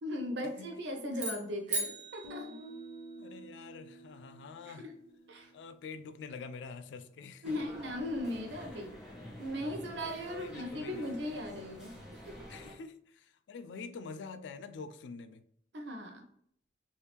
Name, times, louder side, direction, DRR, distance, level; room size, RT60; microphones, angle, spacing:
voice 1, 0.0-2.5 4.7-5.0 5.3-5.5 7.4-8.9 9.4-11.9 12.3-12.4 15.7-16.3, left 1 dB, 80° right, 3 dB, 0.7 m, -38 dB
sound 1, 1.1-3.4, right 2 dB, 40° right, 0.7 m, -39 dB
Guitar, 2.2-6.2, right 1 dB, 60° right, 1.4 m, -50 dB
voice 2, 3.2-4.9 5.5-7.7 10.3-11.1 12.5-15.4, left 5 dB, 80° left, 11 dB, 0.3 m, -46 dB
sound 2, 7.4-12.7, equal, 5° right, 0.7 m, -49 dB
3.3 x 2.7 x 2.9 m, 0.68 s
head